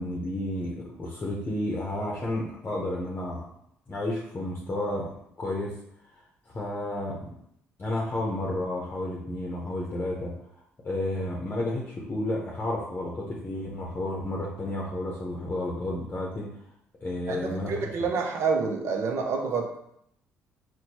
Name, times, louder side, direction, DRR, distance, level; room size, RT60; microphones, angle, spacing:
voice 1, 0.0-3.4 3.9-5.7 6.5-7.3 7.8-10.3 10.8-16.5 17.0-17.9, left 1 dB, 35° left, -3 dB, 0.7 m, -31 dB
voice 2, 17.3-19.8, right 4 dB, 60° right, 3 dB, 0.6 m, -28 dB
4.3 x 2.2 x 2.7 m, 0.74 s
supercardioid pair, 75°, 5 cm